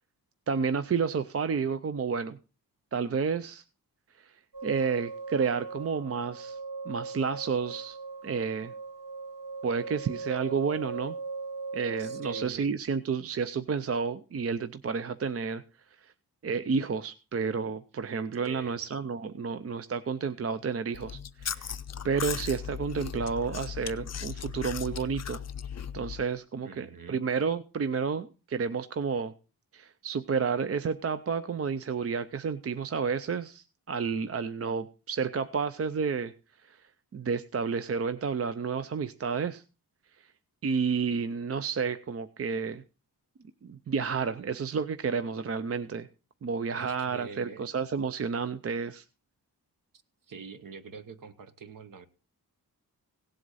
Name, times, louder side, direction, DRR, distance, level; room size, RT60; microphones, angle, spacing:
voice 1, 0.5-2.4 2.9-3.6 4.2-4.3 4.6-6.6 6.9-8.0 8.2-8.7 9.6-11.2 11.7-15.6 16.0-16.1 16.4-21.7 22.0-25.4 25.9-29.3 29.7-36.3 36.6-36.8 37.1-39.6 40.6-42.8 43.6-46.1 46.4-49.0, right 5 dB, 40° right, 12 dB, 0.5 m, -31 dB
sound 1, 4.5-12.5, right 4 dB, 75° right, 3.1 m, -39 dB
voice 2, 12.0-12.7 18.4-18.8 26.6-27.2 46.7-47.8 50.3-52.1, right 5 dB, 55° right, 11 dB, 1.1 m, -45 dB
Chewing mastication, 20.9-26.3, left 8 dB, 45° left, 0.5 m, -37 dB
17.0 x 7.8 x 4.1 m, 0.33 s
wide cardioid pair, 175°, 38 cm